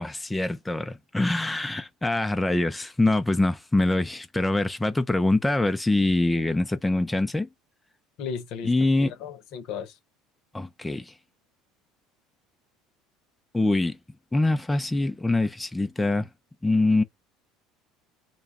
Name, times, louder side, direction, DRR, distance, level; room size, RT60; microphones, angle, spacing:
voice 1, 0.0-7.5 8.6-9.1 10.5-11.1 13.5-14.0 14.3-16.3 16.6-17.0, left 2 dB, 10° left, 0.4 m, -24 dB
voice 2, 8.2-8.7 9.0-9.9, left 7 dB, 60° left, 0.8 m, -35 dB
3.0 x 2.2 x 4.1 m
figure-of-eight pair, 65°, 0 cm